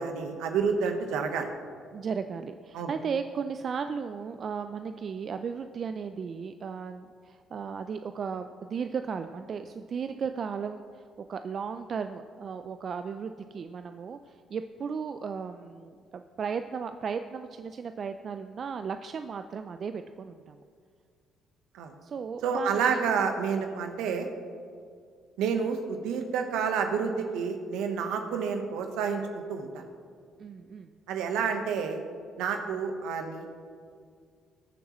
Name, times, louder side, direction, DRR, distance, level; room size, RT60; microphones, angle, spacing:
voice 1, 0.0-1.5 2.7-2.9 21.7-21.9 22.4-24.3 25.4-29.8 31.1-32.0 32.4-33.6, right 6 dB, 75° right, 5 dB, 1.1 m, -29 dB
voice 2, 1.9-11.0 11.3-20.6 22.0-22.8 30.4-30.9, right 6 dB, 50° right, 9 dB, 0.4 m, -35 dB
20.0 x 7.1 x 3.1 m, 2.1 s
hypercardioid pair, 55°, 0 cm